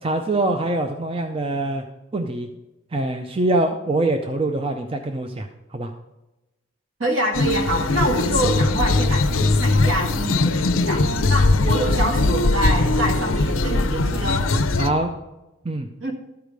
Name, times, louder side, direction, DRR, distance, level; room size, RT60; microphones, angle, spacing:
voice 1, 0.0-1.8 2.1-2.5 2.9-5.9 14.8-15.1 15.6-15.9, right 2 dB, 25° right, 5 dB, 0.5 m, -24 dB
voice 2, 7.0-14.5 16.0-16.1, right 1 dB, 70° right, 3 dB, 1.8 m, -26 dB
sound 1, 7.3-14.9, left 2 dB, 80° left, 0.6 m, -20 dB
12.5 x 4.9 x 5.1 m, 1.0 s
head